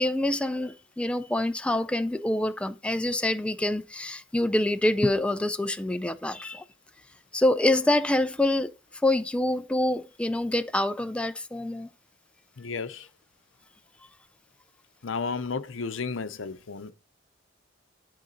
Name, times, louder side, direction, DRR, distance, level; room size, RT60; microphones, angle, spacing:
voice 1, 0.0-6.6 7.3-8.7 9.0-11.9, left 1 dB, 5° left, 0.3 m, -26 dB
voice 2, 12.6-13.1 15.0-16.9, left 4 dB, 75° left, 0.7 m, -33 dB
11.5 x 3.8 x 4.0 m
head